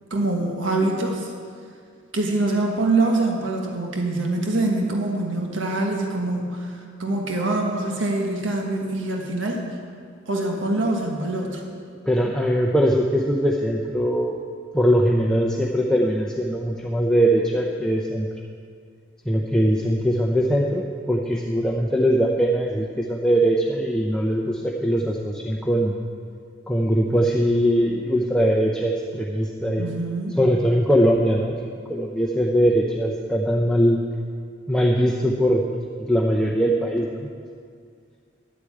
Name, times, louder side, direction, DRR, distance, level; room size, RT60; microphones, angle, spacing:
voice 1, 0.1-1.3 2.1-9.7 10.3-11.6 29.8-30.4, right 2 dB, 80° right, 1 dB, 1.5 m, -24 dB
voice 2, 12.1-14.4 14.7-18.3 19.3-25.9 26.7-29.8 30.4-31.5 31.9-34.0 34.7-35.6 36.1-37.3, equal, 5° left, -2 dB, 0.7 m, -21 dB
11.0 x 8.2 x 8.5 m, 2.2 s
head